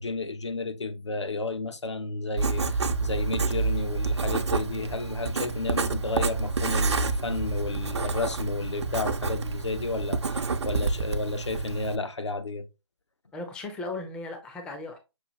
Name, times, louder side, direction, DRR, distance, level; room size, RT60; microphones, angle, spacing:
voice 1, 0.0-12.7, left 3 dB, 75° left, 0.8 m, -32 dB
Writing, 2.4-12.0, right 4 dB, 70° right, 0.6 m, -28 dB
voice 2, 13.3-15.0, left 2 dB, 5° left, 0.4 m, -36 dB
6.1 x 2.3 x 3.0 m
figure-of-eight pair, 140°, 15 cm